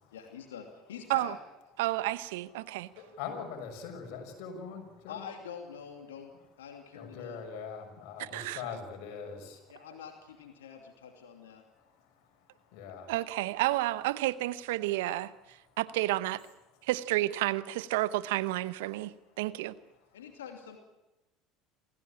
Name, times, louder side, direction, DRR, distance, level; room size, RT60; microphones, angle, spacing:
voice 1, 0.1-1.4 5.1-6.3 6.6-7.4 8.6-8.8 9.7-11.6 20.1-20.8, left 7 dB, 85° left, 4 dB, 2.6 m, -45 dB
voice 2, 1.8-2.9 8.3-8.6 13.1-16.4 16.8-19.7, right 17 dB, 75° right, 16 dB, 0.9 m, -31 dB
voice 3, 2.5-5.3 6.9-9.8 11.3-13.1 15.6-15.8 16.7-16.9 19.3-19.4 19.9-20.2, left 6 dB, 65° left, 4 dB, 6.4 m, -44 dB
26.5 x 16.5 x 8.8 m, 0.99 s
hypercardioid pair, 70°, 0 cm